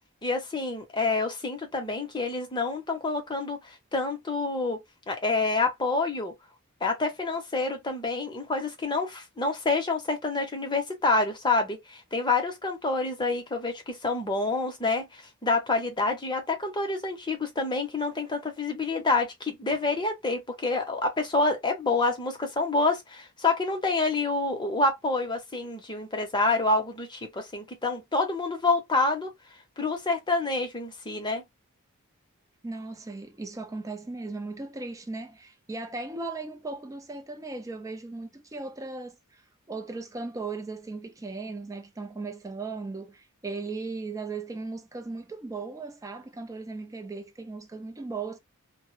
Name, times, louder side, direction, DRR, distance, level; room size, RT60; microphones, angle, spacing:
voice 1, 0.2-4.8 5.1-6.3 6.8-29.3 29.8-31.4, left 3 dB, 20° left, 0.6 m, -27 dB
voice 2, 32.6-39.4 39.7-48.4, right 3 dB, 15° right, 0.4 m, -37 dB
2.0 x 2.0 x 3.0 m
head